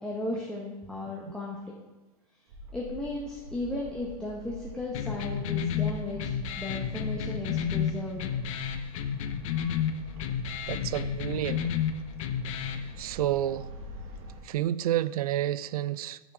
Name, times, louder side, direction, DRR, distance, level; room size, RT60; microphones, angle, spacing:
voice 1, 0.0-1.6 2.7-8.3, left 2 dB, 5° left, 1.3 m, -35 dB
sound 1, 2.5-14.4, equal, 55° right, 1.6 m, -44 dB
sound 2, 4.9-12.9, left 8 dB, 55° left, 0.7 m, -31 dB
voice 2, 10.7-11.6 13.0-13.7 14.4-16.3, right 12 dB, 70° right, 0.4 m, -30 dB
9.6 x 5.8 x 3.6 m
hypercardioid pair, 105°, 20 cm